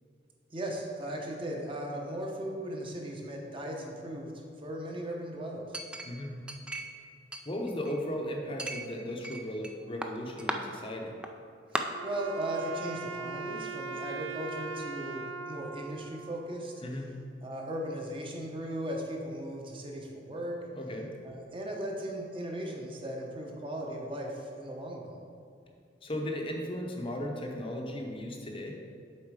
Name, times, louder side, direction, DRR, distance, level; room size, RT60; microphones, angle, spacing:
voice 1, 0.5-4.3 4.6-5.7 11.7-16.7 17.4-20.6 21.2-25.1, right 1 dB, 30° right, 0 dB, 0.9 m, -37 dB
Chink clink, 5.7-7.0 7.3-8.1 8.6-9.7 10.0-10.6 11.2-11.3 11.7-11.8, right 1 dB, 5° right, 0.3 m, -36 dB
voice 2, 7.5-11.1 16.8-17.1 20.7-21.1 26.0-28.8, left 1 dB, 30° left, 1 dB, 0.7 m, -36 dB
Wind instrument woodwind instrument, 11.9-17.1, right 4 dB, 85° right, 0.4 m, -40 dB
7.4 x 4.4 x 4.8 m, 2.5 s
head